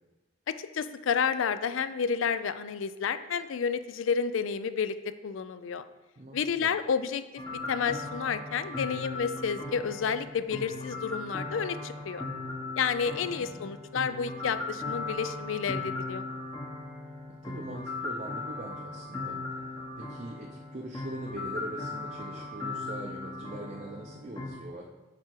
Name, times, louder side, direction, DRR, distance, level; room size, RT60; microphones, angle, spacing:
voice 1, 0.5-4.9 5.2-5.8 6.3-7.2 7.5-12.3 12.8-16.2, left 6 dB, 75° left, 12 dB, 0.4 m, -30 dB
voice 2, 6.2-6.7 13.2-13.6 17.4-19.4 20.0-24.9, right 1 dB, 35° right, 0 dB, 0.5 m, -42 dB
sound 1, 7.4-24.5, left 2 dB, 20° left, 0.8 m, -38 dB
7.5 x 4.8 x 4.5 m, 1.1 s
head